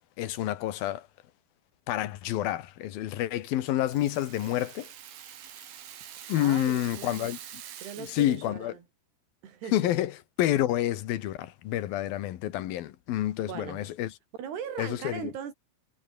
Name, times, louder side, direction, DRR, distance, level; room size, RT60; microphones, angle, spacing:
voice 1, 0.2-1.0 1.9-4.9 6.3-7.4 8.1-8.7 9.7-10.1 10.4-14.1 14.8-15.2, left 13 dB, 70° left, 3.0 m, -28 dB
Rattle (instrument), 3.5-8.5, right 10 dB, 65° right, 3.9 m, -46 dB
voice 2, 6.4-7.3 7.8-8.9 9.4-9.8 13.4-13.9 14.4-15.5, right 8 dB, 85° right, 5.5 m, -39 dB
omnidirectional pair, 4.6 m